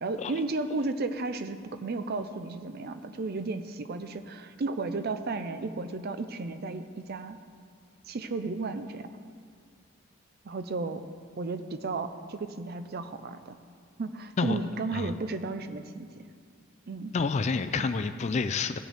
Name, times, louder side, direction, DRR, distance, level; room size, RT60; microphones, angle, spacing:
voice 1, 0.0-7.4 8.1-9.1 10.4-11.0 11.4-13.6 14.0-16.1 16.9-17.1 17.8-17.9, right 3 dB, 50° right, 10 dB, 0.5 m, -34 dB
voice 2, 17.1-18.8, left 4 dB, 35° left, 11 dB, 0.3 m, -28 dB
16.0 x 6.3 x 3.4 m, 2.1 s
head